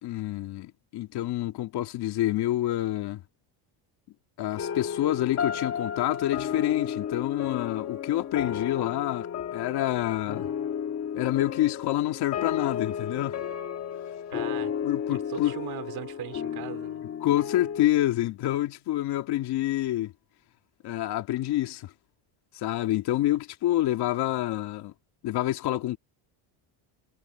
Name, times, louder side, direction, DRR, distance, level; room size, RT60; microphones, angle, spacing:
voice 1, 0.0-3.2 4.4-10.5 11.1-13.4 14.8-15.5 17.2-20.1 20.8-21.9 22.5-24.9 25.2-26.0, left 14 dB, 55° left, 2.4 m, -27 dB
sound 1, 4.6-17.9, left 8 dB, 35° left, 1.5 m, -33 dB
voice 2, 14.3-14.7 15.1-17.0, right 13 dB, 50° right, 4.3 m, -39 dB
cardioid pair, 165°, 46 cm